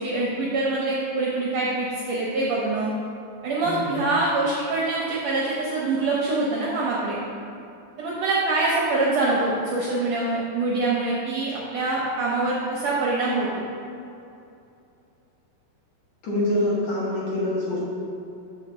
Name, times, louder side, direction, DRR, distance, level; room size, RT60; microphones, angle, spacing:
voice 1, 0.0-2.9 3.4-7.2 8.0-13.6, right 2 dB, 70° right, -5 dB, 1.6 m, -24 dB
voice 2, 3.6-4.0 16.2-17.8, left 1 dB, 60° left, -6 dB, 2.4 m, -25 dB
6.4 x 4.3 x 6.4 m, 2.7 s
omnidirectional pair, 3.9 m